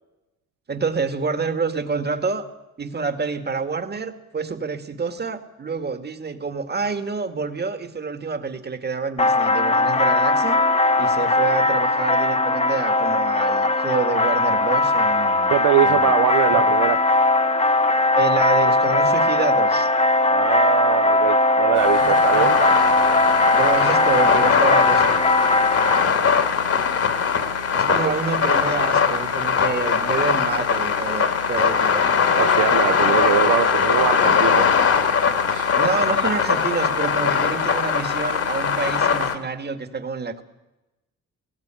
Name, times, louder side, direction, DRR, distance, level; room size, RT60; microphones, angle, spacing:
voice 1, 0.7-2.5 2.8-10.6 11.0-15.6 15.8-16.1 16.5-16.7 18.1-19.9 22.0-22.8 23.5-25.1 27.7-32.1 35.7-40.4, right 4 dB, 35° right, 2.0 m, -27 dB
sound 1, 9.2-26.0, left 2 dB, 20° left, 1.3 m, -19 dB
voice 2, 15.5-17.0 20.3-22.6 27.9-28.2 32.4-34.8 35.5-35.7, right 13 dB, 75° right, 0.6 m, -23 dB
sound 2, 21.8-39.3, left 6 dB, 50° left, 2.4 m, -21 dB
18.5 x 16.5 x 9.1 m
cardioid pair, 90°, 30 cm